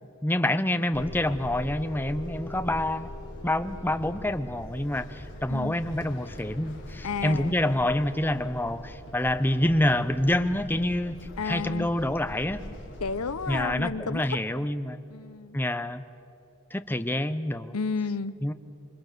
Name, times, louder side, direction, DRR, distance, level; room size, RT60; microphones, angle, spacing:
voice 1, 0.2-3.1 3.4-11.2 11.4-12.6 13.5-15.0 15.5-16.0 16.7-17.7 18.4-18.5, left 1 dB, 10° left, 10 dB, 0.8 m, -27 dB
sound 1, 0.9-13.6, left 1 dB, 55° left, 3.6 m, -42 dB
voice 2, 7.0-7.6 11.4-11.9 13.0-14.2 15.1-15.6 17.7-18.4, left 4 dB, 80° left, 14 dB, 0.8 m, -31 dB
28.0 x 24.0 x 6.8 m, 2.7 s
head